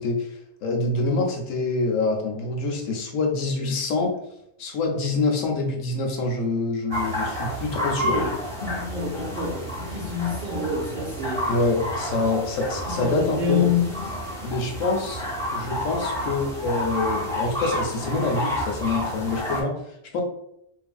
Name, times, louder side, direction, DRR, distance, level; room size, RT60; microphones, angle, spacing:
voice 1, 0.0-4.1 4.6-8.2 11.5-13.7 14.4-15.2 15.5-20.2, left 3 dB, 75° left, 0.9 m, -26 dB
sound 1, 6.9-19.6, equal, 5° left, 0.7 m, -30 dB
voice 2, 8.0-8.4 8.6-11.5 12.9-14.0, left 4 dB, 60° right, 0.6 m, -27 dB
3.0 x 2.5 x 2.3 m
omnidirectional pair, 1.4 m